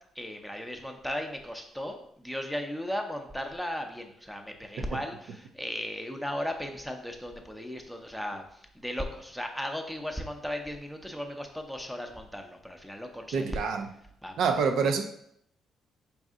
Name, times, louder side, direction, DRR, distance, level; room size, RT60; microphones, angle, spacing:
voice 1, 0.2-13.6 14.2-14.6, equal, ahead, 4 dB, 0.6 m, -36 dB
voice 2, 13.3-13.8 14.4-15.0, right 5 dB, 75° right, 5 dB, 0.5 m, -26 dB
4.2 x 2.6 x 3.6 m, 0.70 s
cardioid pair, 90°, 0 cm